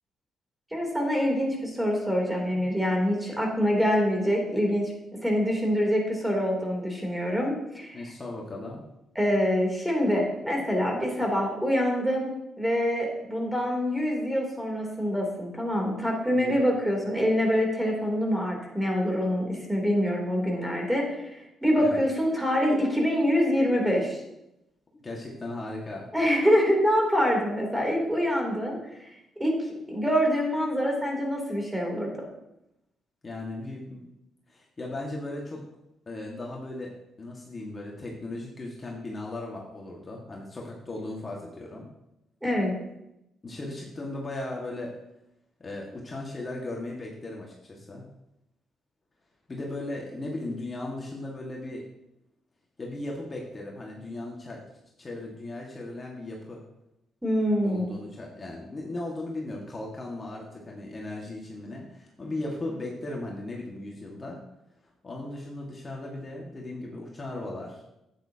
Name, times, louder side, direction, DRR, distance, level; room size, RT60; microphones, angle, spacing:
voice 1, 0.7-8.0 9.1-24.2 26.1-29.1 29.4-29.5 29.9-32.1 42.4-42.7 57.2-58.0, equal, 5° right, -1 dB, 3.1 m, -25 dB
voice 2, 7.9-8.8 16.3-16.7 21.8-22.0 25.0-26.1 33.2-34.1 34.5-35.6 36.1-41.9 43.4-44.9 45.6-48.1 49.5-51.8 52.8-54.6 55.0-56.6 57.6-64.4 65.0-67.8, left 2 dB, 35° left, -2 dB, 1.7 m, -37 dB
10.0 x 8.8 x 2.9 m, 0.88 s
cardioid pair, 70°, 0 cm